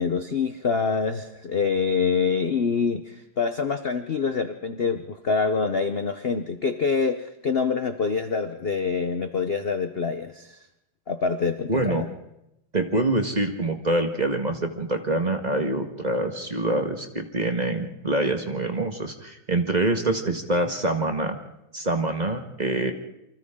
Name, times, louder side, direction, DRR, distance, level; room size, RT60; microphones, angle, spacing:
voice 1, 0.0-10.6 11.1-12.1, left 5 dB, 50° left, 8 dB, 0.7 m, -25 dB
voice 2, 11.7-12.0 12.7-21.4 21.7-22.9, right 2 dB, 20° right, 4 dB, 1.5 m, -25 dB
28.0 x 25.0 x 3.8 m, 0.86 s
omnidirectional pair, 2.3 m